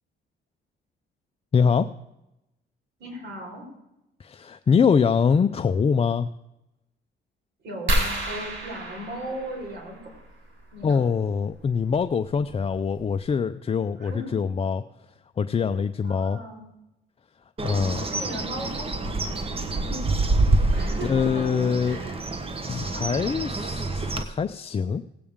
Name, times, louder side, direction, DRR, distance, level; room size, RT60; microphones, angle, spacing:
voice 1, 1.5-1.9 4.2-6.3 10.8-14.8 15.4-16.4 17.6-18.1 20.3-20.8 21.0-22.0 22.6-25.0, left 6 dB, 30° left, 9 dB, 0.4 m, -24 dB
voice 2, 3.0-3.7 7.6-10.1 10.7-11.0 14.0-14.4 16.0-16.7 17.6-19.4 20.7-22.2 23.1-23.3, right 1 dB, 60° right, -1 dB, 4.5 m, -38 dB
sound 1, 7.9-10.3 11.9-12.0 12.6-12.7 13.0-13.2, right 1 dB, 75° right, 4.4 m, -29 dB
Bird, 17.6-24.2, right 2 dB, 30° right, 1.1 m, -27 dB
18.0 x 8.5 x 3.6 m, 0.90 s
cardioid pair, 90°, 20 cm